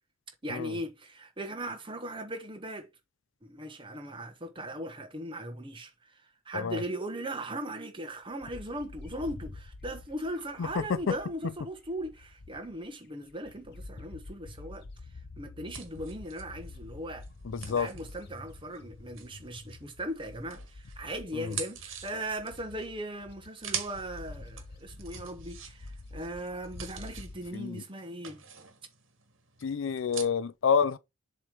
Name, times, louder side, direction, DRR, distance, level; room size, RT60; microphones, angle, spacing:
voice 1, 0.4-2.9 3.4-14.8 15.4-17.3 17.7-28.4, right 1 dB, 25° right, 1.2 m, -38 dB
Bird, 8.4-12.9 13.3-27.5, left 2 dB, 50° left, 0.8 m, -48 dB
sound 1, 15.7-20.0 20.5-30.2, right 8 dB, 70° right, 1.6 m, -44 dB
voice 2, 17.4-17.9 21.3-21.6 27.5-27.8 29.6-31.0, left 6 dB, 65° left, 0.4 m, -28 dB
7.3 x 3.3 x 4.9 m
head